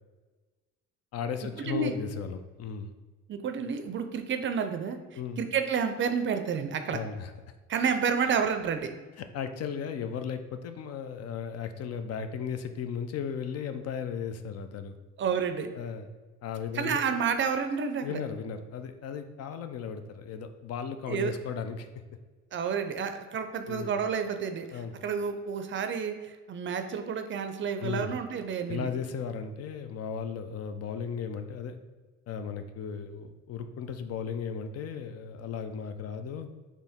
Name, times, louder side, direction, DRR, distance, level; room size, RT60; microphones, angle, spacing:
voice 1, 1.1-2.9 5.1-5.4 6.9-7.3 9.2-15.0 15.7-16.1 16.4-17.0 18.0-21.9 23.7-24.0 24.7-24.9 27.8-28.1 28.7-31.8 32.3-36.5, left 6 dB, 55° left, 8 dB, 0.4 m, -36 dB
voice 2, 3.3-5.0 5.4-7.0 7.7-8.9 15.2-15.7 16.7-18.2 21.1-21.3 22.5-28.9, right 6 dB, 40° right, 7 dB, 0.4 m, -30 dB
4.4 x 3.0 x 3.5 m, 1.3 s
cardioid pair, 120°, 30 cm